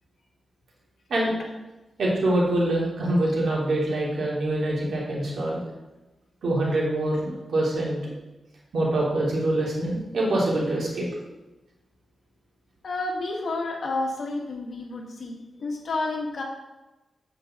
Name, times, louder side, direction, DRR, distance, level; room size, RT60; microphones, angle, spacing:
voice 1, 2.0-5.6 6.4-8.1 8.7-11.1, right 1 dB, 70° right, -4 dB, 3.1 m, -25 dB
voice 2, 12.8-16.4, left 2 dB, 60° left, 0 dB, 1.8 m, -30 dB
8.4 x 7.5 x 3.8 m, 1.0 s
wide cardioid pair, 115°, 0 cm